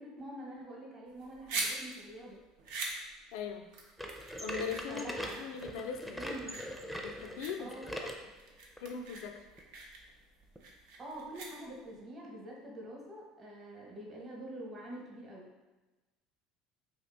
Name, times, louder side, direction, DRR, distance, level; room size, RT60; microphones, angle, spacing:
voice 1, 0.0-2.4 4.9-5.5 6.1-6.7 7.6-7.9 11.0-15.5, right 1 dB, 35° right, -2 dB, 1.0 m, -46 dB
sound 1, 1.1-12.0, right 3 dB, 75° right, 0.5 m, -43 dB
voice 2, 3.3-3.7 4.4-6.2 7.0-7.7 8.8-9.4, left 6 dB, 75° left, 5 dB, 0.3 m, -40 dB
sound 2, 4.0-8.2 8.8-8.9 9.6-9.7 10.5-10.6, equal, ahead, 0.5 m, -41 dB
2.7 x 2.5 x 3.4 m, 1.2 s
hypercardioid pair, 80°, 0 cm